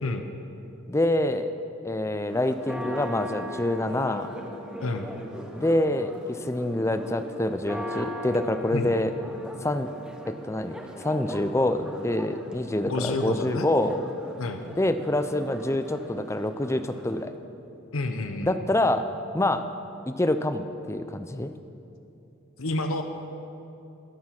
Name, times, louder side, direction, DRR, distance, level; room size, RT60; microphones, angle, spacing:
voice 1, 0.9-1.5 1.8-4.3 5.5-9.1 9.6-9.9 10.3-14.0 14.8-17.3 18.4-19.0 19.3-19.6 20.1-21.5, left 1 dB, 15° left, 10 dB, 0.5 m, -26 dB
Church bell, 2.3-17.2, left 1 dB, 5° right, 0.9 m, -39 dB
voice 2, 12.9-13.7 14.4-14.7 17.9-18.6 22.6-23.0, left 2 dB, 80° left, 6 dB, 0.9 m, -29 dB
21.0 x 7.2 x 6.0 m, 2.8 s
head